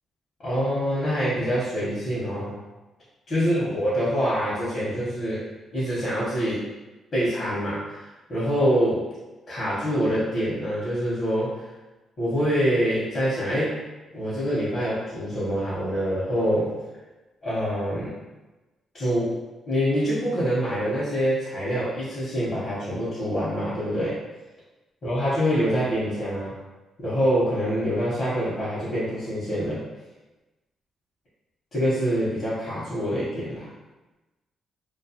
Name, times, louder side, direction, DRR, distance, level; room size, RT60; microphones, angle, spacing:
voice 1, 0.4-2.5 3.3-5.4 5.7-6.6 7.1-9.0 9.5-11.5 12.2-13.7 14.1-16.7 17.4-18.2 18.9-19.3 19.7-24.2 25.0-26.5 27.0-29.8 31.7-33.7, equal, 40° left, -10 dB, 0.8 m, -25 dB
2.4 x 2.3 x 2.7 m, 1.1 s
cardioid pair, 150°, 0 cm